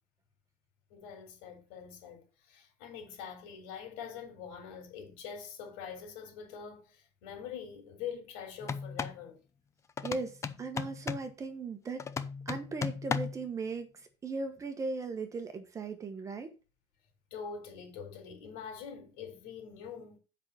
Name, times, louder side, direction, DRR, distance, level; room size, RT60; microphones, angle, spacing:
voice 1, 0.9-9.4 17.3-20.2, left 7 dB, 70° left, 4.3 m, -44 dB
sound 1, 8.6-9.2 10.0-11.3 12.0-13.5, left 6 dB, 20° left, 0.5 m, -36 dB
voice 2, 10.0-12.1 12.4-16.5, right 4 dB, 20° right, 1.1 m, -38 dB
7.8 x 5.7 x 5.6 m
cardioid pair, 160°, 16 cm